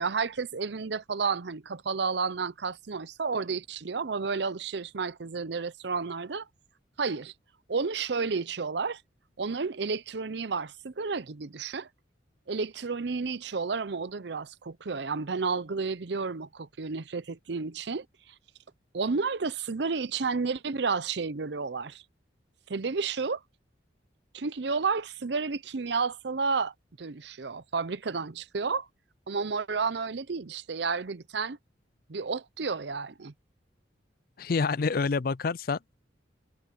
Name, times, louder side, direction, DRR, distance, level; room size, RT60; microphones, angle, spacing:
voice 1, 0.0-6.5 7.0-7.3 7.7-9.0 9.4-11.9 12.5-18.3 18.9-22.0 22.7-23.4 24.3-28.9 29.3-31.6 32.1-33.3, right 4 dB, 65° right, 0.7 m, -31 dB
voice 2, 34.4-36.0, left 4 dB, 50° left, 0.4 m, -28 dB
head